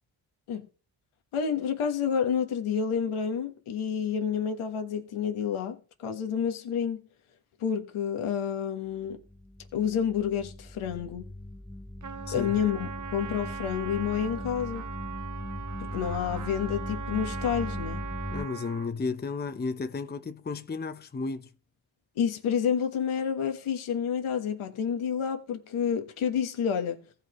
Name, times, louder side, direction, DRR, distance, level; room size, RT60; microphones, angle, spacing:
voice 1, 1.3-7.0 7.6-9.2 9.7-11.3 12.3-14.8 15.8-18.1 22.2-27.0, left 8 dB, 80° left, 1.4 m, -29 dB
sound 1, 9.1-18.5, left 1 dB, ahead, 0.3 m, -39 dB
Trumpet, 12.0-18.9, right 8 dB, 40° right, 0.7 m, -40 dB
voice 2, 12.3-12.6 18.3-21.5, left 4 dB, 20° left, 0.7 m, -33 dB
15.5 x 5.5 x 3.1 m
cardioid pair, 65°, 48 cm